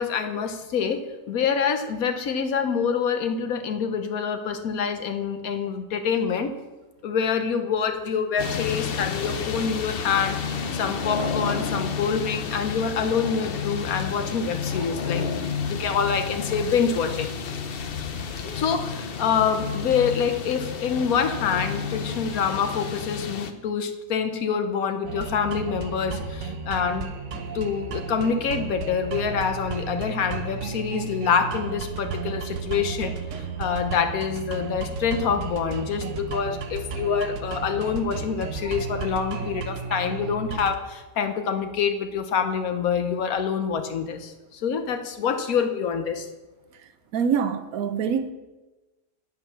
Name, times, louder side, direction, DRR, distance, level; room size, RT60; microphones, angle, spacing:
voice 1, 0.0-6.5 7.0-17.3 18.5-46.3, left 6 dB, 85° left, 1.4 m, -26 dB
sound 1, 8.4-23.5, left 6 dB, 50° left, 0.8 m, -31 dB
sound 2, 25.1-40.8, right 5 dB, 60° right, 1.1 m, -33 dB
voice 2, 47.1-48.3, right 7 dB, 85° right, 1.2 m, -24 dB
9.0 x 8.2 x 5.9 m
omnidirectional pair, 1.5 m